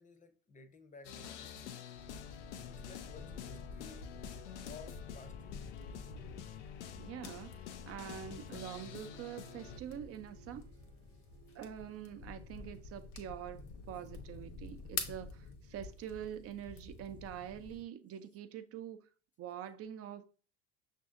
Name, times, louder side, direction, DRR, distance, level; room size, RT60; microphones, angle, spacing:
voice 1, 0.0-1.9 2.7-4.2 4.6-5.6, left 4 dB, 20° left, 0.7 m, -56 dB
sound 1, 1.0-9.8, left 10 dB, 85° left, 0.5 m, -48 dB
sound 2, 2.0-17.8, left 4 dB, 55° left, 1.0 m, -48 dB
voice 2, 7.0-10.6 11.5-19.1 19.4-20.2, right 10 dB, 45° right, 0.6 m, -45 dB
Bowed string instrument, 8.7-13.8, right 9 dB, 90° right, 0.6 m, -62 dB
6.0 x 2.7 x 2.5 m
hypercardioid pair, 75°, 34 cm